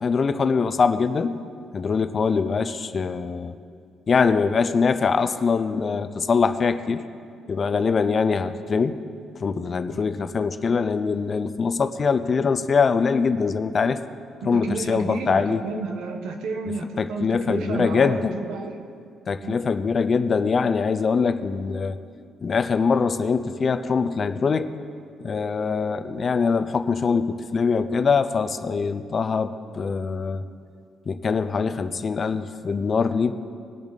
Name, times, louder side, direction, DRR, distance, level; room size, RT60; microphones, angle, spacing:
voice 1, 0.0-1.4 1.7-3.5 4.1-7.0 7.5-8.9 9.4-14.0 14.4-15.6 17.0-18.3 19.3-22.0 22.4-24.7 25.2-30.4 31.1-33.3, left 5 dB, 45° left, 11 dB, 0.6 m, -23 dB
voice 2, 14.5-18.8 19.4-19.6, right 4 dB, 85° right, 5 dB, 1.1 m, -31 dB
20.0 x 7.2 x 4.0 m, 2.3 s
cardioid pair, 90°, 0 cm